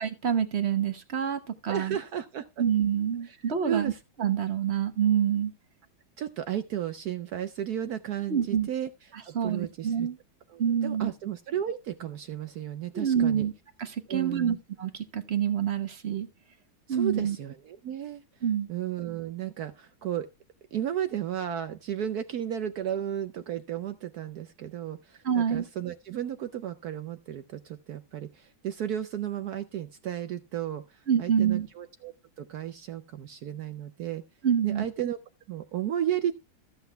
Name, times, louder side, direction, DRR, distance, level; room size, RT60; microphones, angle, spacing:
voice 1, 0.0-2.0 2.6-3.9 4.2-5.5 8.3-8.7 9.3-10.2 10.6-11.1 12.9-13.5 13.8-16.3 16.9-17.4 18.4-18.7 25.2-25.6 31.1-31.7 34.4-34.9, right 8 dB, 40° right, 1.0 m, -27 dB
voice 2, 1.7-2.4 3.2-3.4 3.6-4.0 6.2-8.9 9.2-10.1 10.5-13.5 14.1-14.6 16.9-18.2 18.7-20.3 20.7-34.2 34.6-35.2 35.5-36.3, right 10 dB, 65° right, 1.0 m, -34 dB
14.0 x 7.9 x 3.3 m
omnidirectional pair, 2.1 m